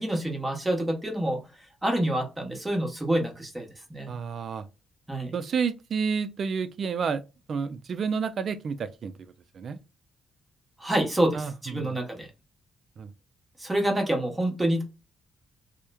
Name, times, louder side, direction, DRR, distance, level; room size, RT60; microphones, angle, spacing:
voice 1, 0.0-1.4 1.8-4.2 5.1-5.3 10.8-12.3 13.6-14.8, right 1 dB, 15° right, 1.0 m, -27 dB
voice 2, 4.1-4.6 5.3-7.2 7.5-9.1 9.5-9.8 11.3-12.0 13.0-13.1, right 6 dB, 55° right, 0.3 m, -30 dB
2.9 x 2.0 x 2.2 m
cardioid pair, 90°, 0 cm